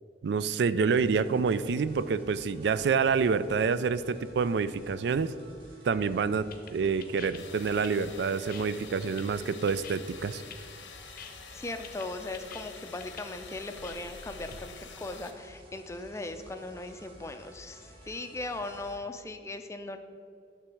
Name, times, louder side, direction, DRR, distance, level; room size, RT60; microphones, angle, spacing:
voice 1, 0.2-5.3 5.8-10.4, right 5 dB, 65° right, 15 dB, 0.3 m, -27 dB
sound 1, 0.8-19.0, equal, 30° right, 1.6 m, -53 dB
sound 2, 6.0-14.6, left 7 dB, 50° left, 0.7 m, -49 dB
sound 3, 7.3-15.3, left 6 dB, 85° left, 0.8 m, -48 dB
voice 2, 11.5-20.0, left 2 dB, 15° left, 7 dB, 0.5 m, -38 dB
9.8 x 3.4 x 7.1 m, 2.3 s
head